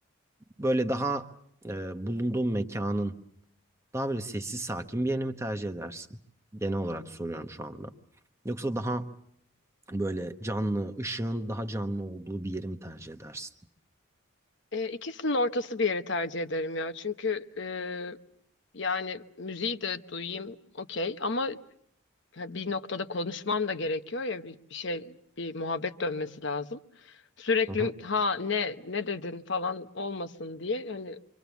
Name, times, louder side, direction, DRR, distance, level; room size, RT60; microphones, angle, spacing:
voice 1, 0.6-1.3 1.6-3.1 3.9-6.2 6.5-7.9 8.4-9.1 9.9-13.5 27.7-27.9, right 1 dB, 15° right, 7 dB, 1.0 m, -31 dB
voice 2, 14.7-18.2 18.7-21.6 22.3-31.2, left 3 dB, 55° left, 9 dB, 1.0 m, -31 dB
26.5 x 24.5 x 7.1 m, 0.70 s
head